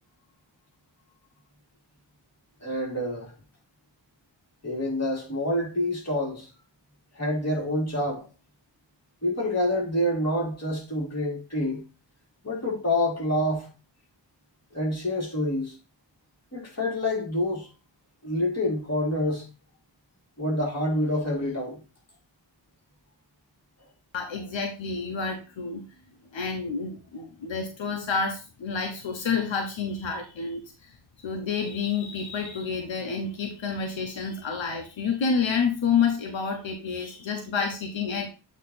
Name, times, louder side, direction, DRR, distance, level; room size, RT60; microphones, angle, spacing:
voice 1, 2.6-3.3 4.6-6.5 7.1-8.3 9.2-11.8 12.4-13.7 14.7-15.8 16.5-17.7 18.2-19.5 20.4-21.8, left 1 dB, 35° left, 3.3 m, -27 dB
voice 2, 24.1-25.8 26.3-30.6 31.2-38.3, left 5 dB, 80° left, 1.0 m, -29 dB
8.2 x 3.1 x 4.2 m
wide cardioid pair, 75°, 45 cm